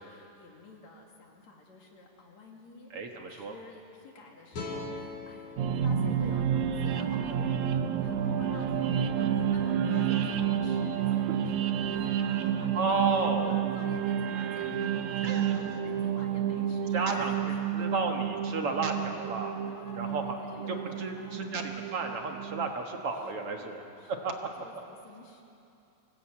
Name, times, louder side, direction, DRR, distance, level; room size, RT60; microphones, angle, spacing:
voice 1, 0.0-5.6 5.8-17.9 19.7-21.5 23.2-25.4, left 3 dB, 70° left, 0 dB, 3.7 m, -50 dB
voice 2, 2.9-3.5 12.7-13.6 15.2-15.6 16.9-19.6 19.9-20.4 20.7-24.3, right 4 dB, 55° right, 3 dB, 2.2 m, -32 dB
sound 1, 4.5-7.7, left 2 dB, 90° left, 5.0 m, -43 dB
sound 2, 5.6-22.7, right 8 dB, 85° right, 2.4 m, -30 dB
24.0 x 18.0 x 8.6 m, 2.7 s
omnidirectional pair, 3.3 m